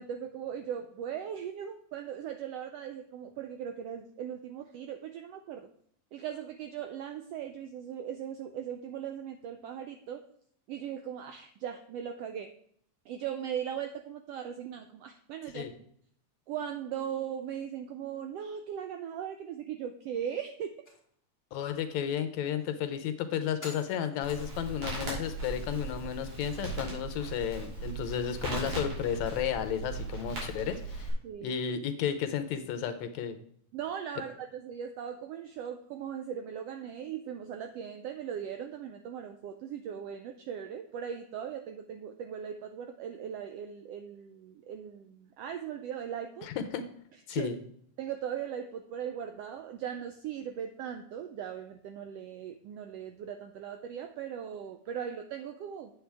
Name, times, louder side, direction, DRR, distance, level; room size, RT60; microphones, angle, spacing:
voice 1, 0.0-5.7 6.1-10.3 10.7-12.5 13.1-15.7 16.5-20.7 31.2-31.6 33.7-46.5 47.3-47.5 48.0-55.9, right 9 dB, 85° right, 7 dB, 1.4 m, -39 dB
sound 1, 20.9-21.0 21.5-21.6 22.6-22.7 23.6-24.7, left 2 dB, 5° left, 1.8 m, -48 dB
voice 2, 21.5-31.1 31.4-33.4 46.4-46.8 47.3-47.6, left 8 dB, 75° left, 8 dB, 2.0 m, -33 dB
Crackle, 24.2-31.1, right 2 dB, 70° right, 4.3 m, -38 dB
8.6 x 8.0 x 3.4 m, 0.66 s
omnidirectional pair, 3.4 m